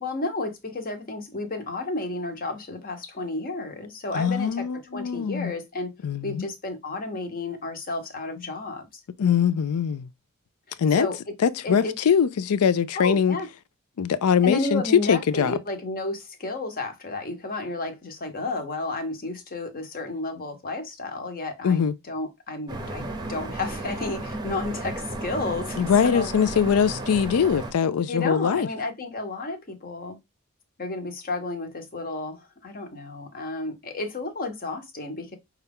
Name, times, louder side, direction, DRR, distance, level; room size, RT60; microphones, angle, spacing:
voice 1, 0.0-5.9 6.2-9.0 10.7-11.2 11.6-11.9 12.9-13.5 14.4-26.3 28.1-30.2 30.8-35.4, left 2 dB, 40° left, 0.9 m, -32 dB
voice 2, 4.1-5.5 6.0-6.5 9.2-10.1 10.8-11.1 11.4-13.4 14.0-14.8 15.1-15.5 21.6-21.9 25.8-28.7, left 7 dB, 80° left, 0.4 m, -22 dB
sound 1, 22.7-27.7, right 2 dB, 20° right, 0.7 m, -34 dB
5.5 x 2.4 x 3.5 m
head